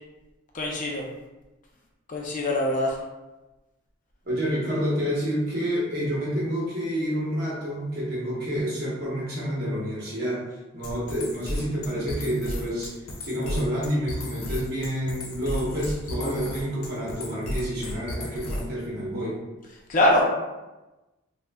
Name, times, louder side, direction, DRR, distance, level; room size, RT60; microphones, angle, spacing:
voice 1, 0.5-1.1 2.1-3.0 19.9-20.3, left 1 dB, 40° left, -1 dB, 0.4 m, -23 dB
voice 2, 4.3-10.4 10.7-12.9 13.2-19.4, equal, 45° right, -6 dB, 0.9 m, -28 dB
sound 1, 10.8-18.8, left 1 dB, 85° left, 0.5 m, -34 dB
3.6 x 2.0 x 2.2 m, 1.1 s
head